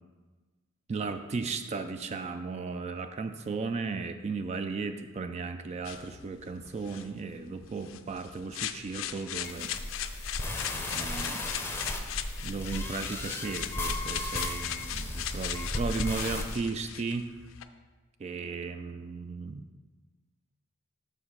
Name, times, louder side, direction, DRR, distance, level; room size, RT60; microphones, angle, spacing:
voice 1, 0.9-9.7 10.3-10.5 10.9-11.6 12.4-17.3 18.2-19.7, right 4 dB, 35° right, 9 dB, 0.3 m, -35 dB
sound 1, 5.8-17.6, left 10 dB, 80° left, 0.4 m, -39 dB
sound 2, 9.4-16.5, left 2 dB, 10° left, 0.7 m, -35 dB
6.6 x 4.9 x 5.5 m, 1.3 s
head